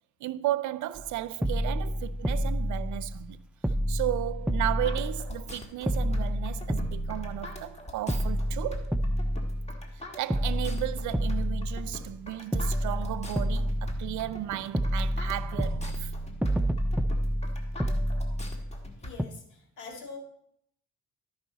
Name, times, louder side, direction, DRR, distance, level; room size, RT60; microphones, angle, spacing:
voice 1, 0.2-3.4 3.9-9.0 10.2-16.1, right 14 dB, 75° right, 0.5 m, -34 dB
sound 1, 0.9-1.1 1.4-3.3 3.6-5.5 5.9-7.7 8.1-10.0 10.3-12.2 12.5-14.4 14.7-18.9 19.2-19.3, equal, 5° right, 0.3 m, -29 dB
sound 2, 4.8-19.1, left 1 dB, 20° left, 1.6 m, -44 dB
voice 2, 19.0-20.2, left 4 dB, 75° left, 2.0 m, -44 dB
13.0 x 5.3 x 4.0 m
cardioid pair, 90°, 30 cm